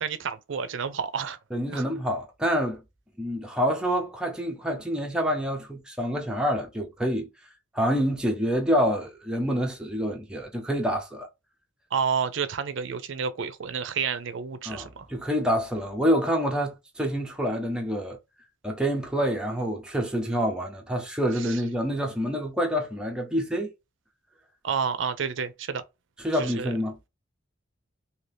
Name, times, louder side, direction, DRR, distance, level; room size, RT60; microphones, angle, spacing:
voice 1, 0.0-1.4 1.7-1.8 11.9-15.1 21.4-21.6 24.6-25.8 26.3-26.7, right 6 dB, 65° right, 0.5 m, -30 dB
voice 2, 1.5-2.8 3.2-7.3 7.7-11.3 14.6-18.2 18.6-23.7 26.2-27.0, equal, 5° right, 0.5 m, -27 dB
2.7 x 2.7 x 3.3 m
head